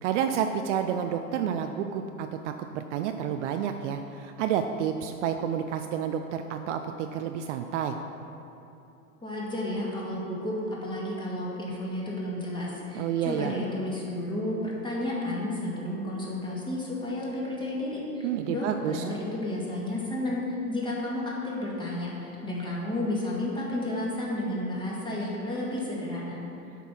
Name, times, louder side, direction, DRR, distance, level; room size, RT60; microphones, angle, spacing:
voice 1, 0.0-8.0 12.9-13.5 18.2-19.0, right 8 dB, 55° right, 6 dB, 0.5 m, -30 dB
voice 2, 9.2-20.4 20.7-26.4, left 1 dB, 10° left, -5 dB, 2.0 m, -32 dB
8.2 x 5.5 x 6.1 m, 2.8 s
hypercardioid pair, 120°, 45 cm